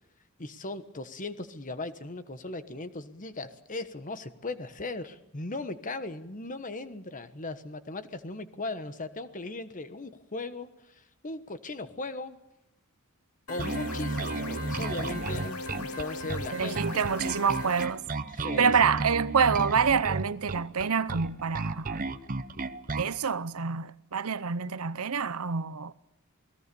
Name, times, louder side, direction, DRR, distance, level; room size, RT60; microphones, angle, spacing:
voice 1, 0.4-12.4 13.5-17.1 18.3-18.9, left 2 dB, 35° left, 1.3 m, -38 dB
sound 1, 13.5-17.9, left 2 dB, 85° left, 2.3 m, -38 dB
Bass guitar, 13.6-23.2, right 3 dB, 40° right, 0.9 m, -33 dB
voice 2, 16.5-18.0 18.4-22.0 23.0-25.9, right 6 dB, 80° right, 0.8 m, -27 dB
28.5 x 18.5 x 7.0 m
head